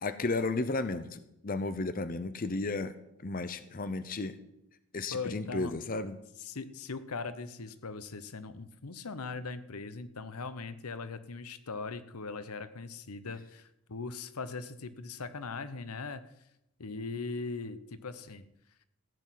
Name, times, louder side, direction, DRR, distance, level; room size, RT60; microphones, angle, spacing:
voice 1, 0.0-2.9 3.2-4.3 4.9-6.2, left 3 dB, 40° left, 12 dB, 0.7 m, -33 dB
voice 2, 5.1-5.7 6.4-16.3 16.8-18.4, left 4 dB, 85° left, 13 dB, 0.9 m, -40 dB
15.0 x 6.2 x 9.1 m, 0.83 s
head